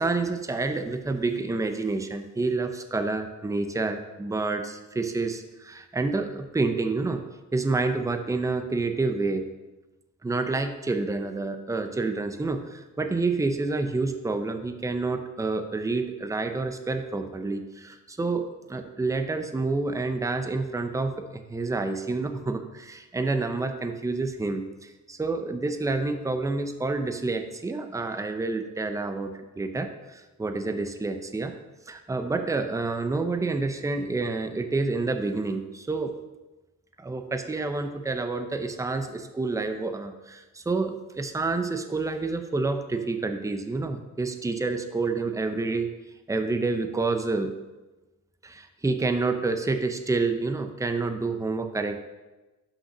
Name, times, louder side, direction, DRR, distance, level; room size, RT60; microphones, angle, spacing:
voice 1, 0.0-7.2 7.5-9.5 10.2-31.5 31.9-36.1 37.0-45.9 46.3-47.5 48.4-52.0, right 3 dB, 10° right, 7 dB, 0.7 m, -28 dB
5.7 x 5.6 x 5.9 m, 1.1 s
cardioid pair, 90°, 30 cm